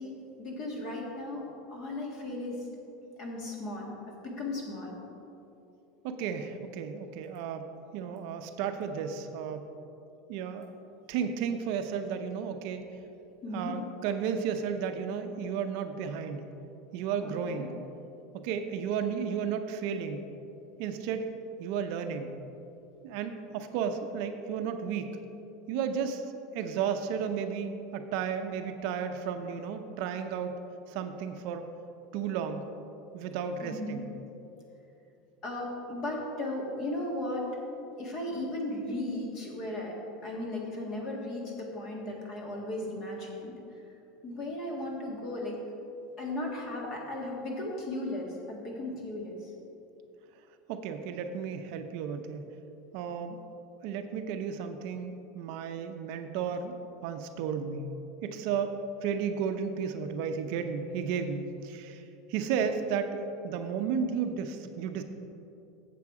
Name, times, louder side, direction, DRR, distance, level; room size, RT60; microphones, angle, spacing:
voice 1, 0.0-2.7 3.2-3.9 4.2-5.0 13.4-13.8 17.2-17.7 33.6-34.0 35.4-37.5 38.0-40.0 40.2-43.6 44.2-45.6 46.2-49.5, left 1 dB, 35° left, -1 dB, 1.7 m, -36 dB
voice 2, 6.0-9.7 10.3-10.7 11.1-12.8 13.5-16.5 16.9-17.7 18.3-20.2 20.8-21.3 21.6-22.3 23.0-25.2 25.7-26.3 26.5-30.6 30.9-31.6 32.1-32.7 33.1-34.0 50.7-52.5 52.9-53.4 53.8-57.9 58.2-58.8 59.0-62.0 62.3-65.0, right 7 dB, 55° right, 7 dB, 0.5 m, -33 dB
7.6 x 7.2 x 4.8 m, 2.8 s
supercardioid pair, 160°, 0 cm